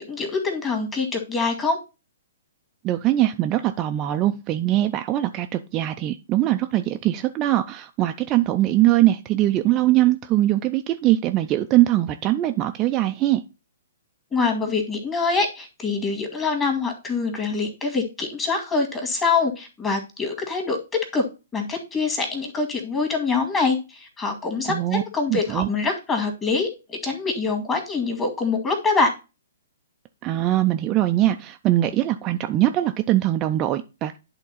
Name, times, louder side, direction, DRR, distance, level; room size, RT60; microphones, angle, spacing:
voice 1, 0.0-1.8 14.3-21.2 21.5-29.1, left 4 dB, 15° left, 2.0 m, -25 dB
voice 2, 2.8-13.4 24.7-25.0 25.3-25.7 30.2-34.2, right 14 dB, 25° right, 0.5 m, -21 dB
10.5 x 3.7 x 4.1 m
figure-of-eight pair, 120°, 0 cm